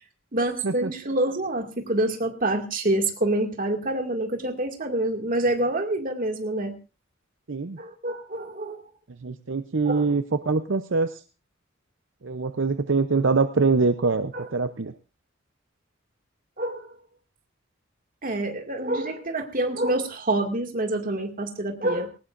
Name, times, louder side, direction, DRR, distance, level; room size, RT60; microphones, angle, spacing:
voice 1, 0.3-6.7 7.8-8.8 9.9-10.2 14.3-14.5 16.6-17.0 18.2-22.1, right 1 dB, 45° right, 4 dB, 2.2 m, -27 dB
voice 2, 9.2-11.1 12.2-14.9, right 4 dB, 65° right, 9 dB, 0.7 m, -24 dB
20.0 x 18.5 x 2.6 m, 0.32 s
head